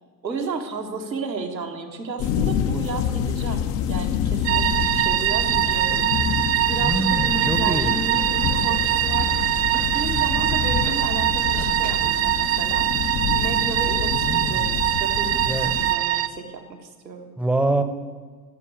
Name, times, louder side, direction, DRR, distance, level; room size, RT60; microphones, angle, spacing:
voice 1, 0.2-6.3 6.6-9.3 9.6-12.9 13.3-17.3, right 4 dB, 85° right, 2 dB, 1.7 m, -33 dB
sound 1, 2.2-15.9, left 8 dB, 30° left, 0.6 m, -27 dB
sound 2, 4.4-16.3, right 13 dB, 30° right, 0.4 m, -23 dB
sound 3, 5.5-12.2, right 8 dB, 50° right, 1.1 m, -42 dB
voice 2, 6.8-7.9 14.2-14.7 15.4-15.8 17.4-17.8, right 2 dB, ahead, 9 dB, 0.9 m, -25 dB
13.5 x 7.0 x 8.6 m, 1.5 s
figure-of-eight pair, 85°, 50 cm